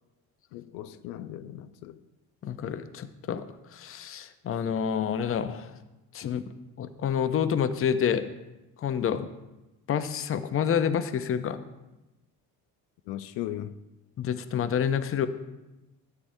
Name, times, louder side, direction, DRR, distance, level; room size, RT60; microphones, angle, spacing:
voice 1, 0.5-2.0 13.1-13.8, left 12 dB, 90° left, 0.5 m, -37 dB
voice 2, 2.4-3.4 3.7-5.7 6.1-6.4 6.8-8.2 8.8-9.3 9.9-11.6 14.2-15.3, left 8 dB, 35° left, 0.6 m, -28 dB
13.5 x 8.5 x 2.7 m
cardioid pair, 95°, 38 cm